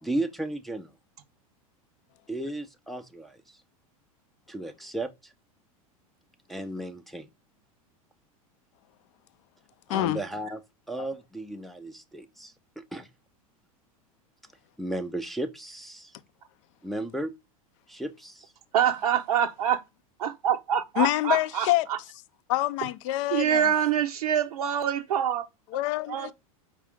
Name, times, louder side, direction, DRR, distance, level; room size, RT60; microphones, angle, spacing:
voice 1, 0.0-0.9 2.3-3.6 4.5-5.3 6.5-7.3 9.9-10.6 10.9-13.1 14.8-16.1 16.8-17.3 17.9-18.5, right 1 dB, ahead, 0.4 m, -34 dB
voice 2, 9.9-10.2 21.0-21.9 22.5-23.7 25.7-26.3, left 16 dB, 55° left, 0.5 m, -26 dB
voice 3, 18.7-19.8 20.2-22.0 23.3-25.5 26.1-26.3, right 9 dB, 90° right, 0.6 m, -25 dB
4.7 x 2.4 x 3.4 m
hypercardioid pair, 120°, 19 cm